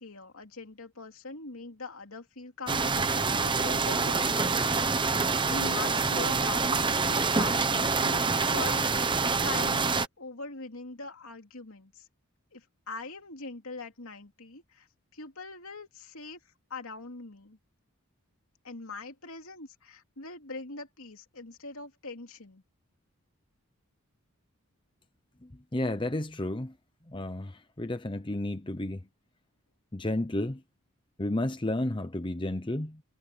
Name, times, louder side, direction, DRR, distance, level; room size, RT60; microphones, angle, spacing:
voice 1, 0.0-12.1 12.5-14.9 15.1-16.4 16.7-17.6 18.6-22.6, left 3 dB, 70° left, 2.9 m, -42 dB
sound 1, 2.7-10.1, right 4 dB, 20° right, 0.9 m, -26 dB
voice 2, 25.4-26.7 27.1-29.0 29.9-30.6 31.2-33.0, left 1 dB, 20° left, 0.8 m, -32 dB
head